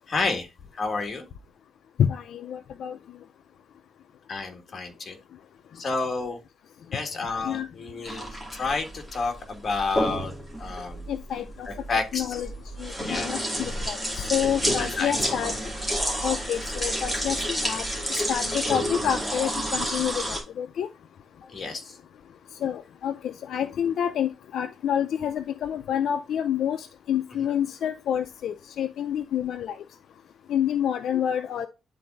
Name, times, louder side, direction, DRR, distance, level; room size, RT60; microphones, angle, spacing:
voice 1, 0.1-0.5 0.7-1.3 4.3-5.2 5.7-6.4 6.9-10.3 10.6-11.1 11.7-12.4 13.1-13.3 13.8-13.9 14.6-15.1 21.5-22.0, left 4 dB, 40° left, 4 dB, 1.9 m, -30 dB
voice 2, 2.0-3.0 7.4-7.7 11.1-11.7 12.1-12.5 12.8-15.5 16.2-17.8 18.3-20.9 22.6-29.7 30.5-31.7, left 9 dB, 80° left, 9 dB, 0.5 m, -28 dB
sound 1, 8.1-20.4, equal, 5° right, 2.4 m, -30 dB
11.0 x 4.2 x 2.5 m, 0.28 s
cardioid pair, 120°, 0 cm